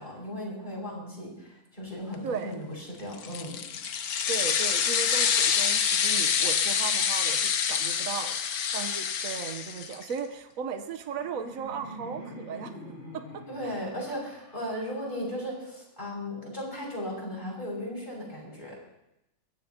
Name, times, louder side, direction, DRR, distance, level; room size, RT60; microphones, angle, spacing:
voice 1, 0.0-3.6 13.5-18.8, equal, 30° left, -3 dB, 6.3 m, -36 dB
sound 1, 3.1-10.1, left 7 dB, 80° left, 1.4 m, -27 dB
voice 2, 4.3-8.4 8.7-12.7 13.1-13.2 13.6-13.8, right 6 dB, 65° right, 7 dB, 1.4 m, -36 dB
Laughter, 10.7-15.7, equal, 50° left, 7.3 m, -46 dB
23.5 x 16.5 x 2.9 m, 0.86 s
omnidirectional pair, 1.6 m